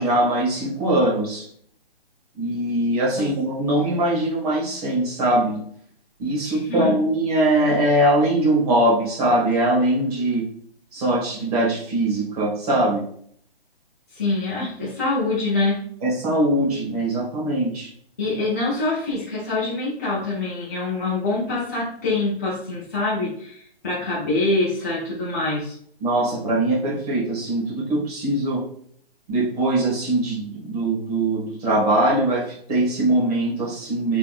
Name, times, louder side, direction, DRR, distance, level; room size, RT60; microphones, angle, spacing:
voice 1, 0.0-1.5 2.4-5.6 6.2-10.5 10.9-13.0 16.0-17.9 26.0-28.6 29.3-34.2, right 1 dB, 40° right, -4 dB, 1.5 m, -21 dB
voice 2, 6.4-6.9 14.1-15.8 18.2-25.7, left 2 dB, 15° left, -8 dB, 0.4 m, -25 dB
3.5 x 3.4 x 2.4 m, 0.63 s
hypercardioid pair, 155°, 30 cm